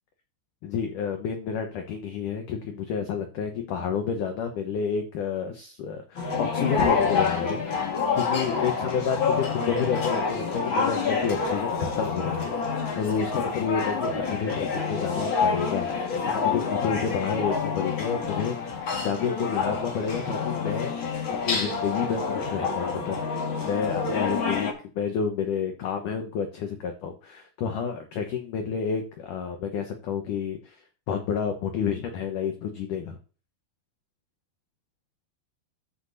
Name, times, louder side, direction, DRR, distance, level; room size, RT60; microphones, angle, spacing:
voice 1, 0.6-7.9 8.1-21.1 21.4-30.8 31.1-33.2, left 6 dB, 90° left, 4 dB, 1.8 m, -30 dB
sound 1, 6.1-24.7, left 5 dB, 70° left, 1.1 m, -27 dB
14.0 x 6.5 x 2.7 m, 0.36 s
omnidirectional pair, 5.2 m